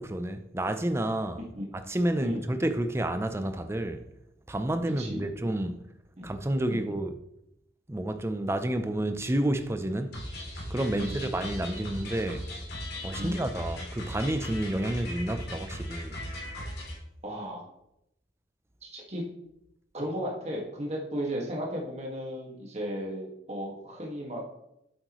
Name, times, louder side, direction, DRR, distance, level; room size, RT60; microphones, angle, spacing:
voice 1, 0.0-1.4 1.7-4.1 4.5-5.8 6.2-7.2 7.9-10.3 10.7-12.5 13.0-16.2, right 1 dB, 15° right, 0.5 m, -30 dB
voice 2, 5.0-5.3 6.2-6.3 6.7-6.9 10.9-11.2 13.2-13.5 17.2-17.6 18.8-19.2 19.9-24.4, equal, 35° right, 1.8 m, -35 dB
sound 1, 10.1-17.0, left 1 dB, 60° left, 2.5 m, -38 dB
8.4 x 7.8 x 3.1 m
head